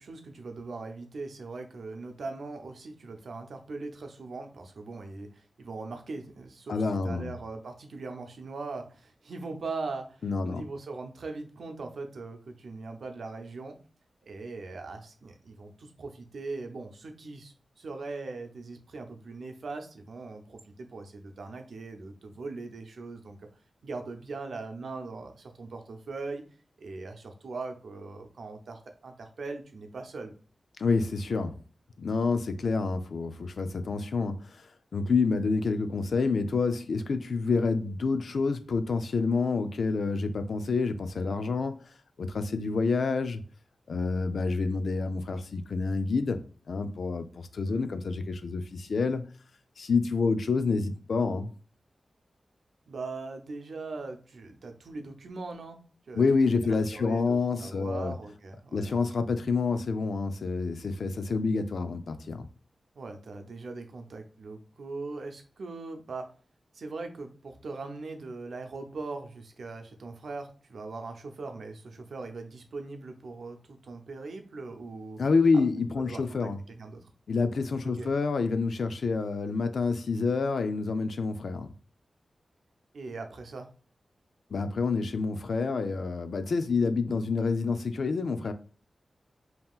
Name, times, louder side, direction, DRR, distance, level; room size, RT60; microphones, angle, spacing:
voice 1, 0.0-13.8 14.2-23.4 23.8-26.4 26.8-30.3 47.7-47.9 52.9-55.8 56.1-59.0 62.9-66.3 66.7-75.2 76.0-77.1 77.9-78.1 82.9-83.7, right 3 dB, 75° right, 0.6 m, -40 dB
voice 2, 6.7-7.3 10.2-10.6 30.8-31.6 32.0-34.4 34.9-41.8 42.2-43.4 43.9-46.4 46.7-49.2 49.8-51.5 56.1-58.1 58.7-62.5 75.2-76.6 77.3-81.7 84.5-88.5, left 4 dB, 70° left, 0.4 m, -28 dB
5.4 x 2.8 x 2.3 m
wide cardioid pair, 145°, 0 cm